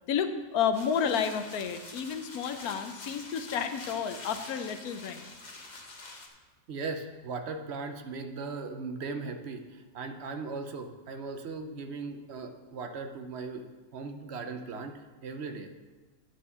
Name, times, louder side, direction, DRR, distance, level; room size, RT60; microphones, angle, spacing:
voice 1, 0.1-5.3, left 7 dB, 70° left, 9 dB, 1.1 m, -31 dB
sound 1, 0.7-6.3, left 3 dB, 35° left, 0.9 m, -46 dB
voice 2, 6.7-13.7 13.9-15.7, right 4 dB, 55° right, 6 dB, 0.8 m, -38 dB
9.4 x 4.7 x 6.8 m, 1.3 s
omnidirectional pair, 1.7 m